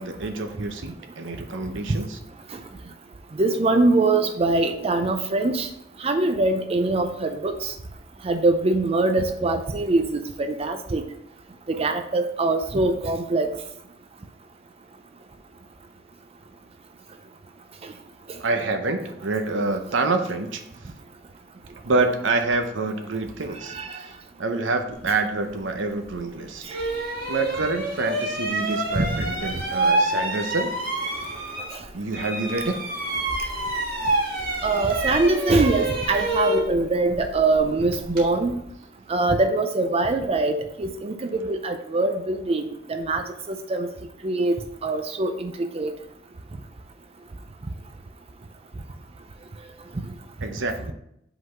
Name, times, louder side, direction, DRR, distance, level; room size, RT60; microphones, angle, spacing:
voice 1, 0.0-2.2 18.4-20.6 21.8-24.1 24.4-26.6 27.3-30.7 31.9-32.7 50.4-50.9, right 3 dB, 75° right, 6 dB, 0.7 m, -27 dB
voice 2, 3.4-5.7 6.0-7.7 8.2-11.0 11.7-13.5 23.7-24.0 26.7-26.8 29.0-29.3 34.6-38.6 39.1-43.9 44.2-44.6 44.8-45.9, right 2 dB, 30° right, 7 dB, 0.4 m, -23 dB
sound 1, 26.1-26.2 26.7-31.9 32.1-38.3, right 1 dB, 55° right, 1.5 m, -27 dB
5.3 x 3.9 x 5.8 m, 0.75 s
head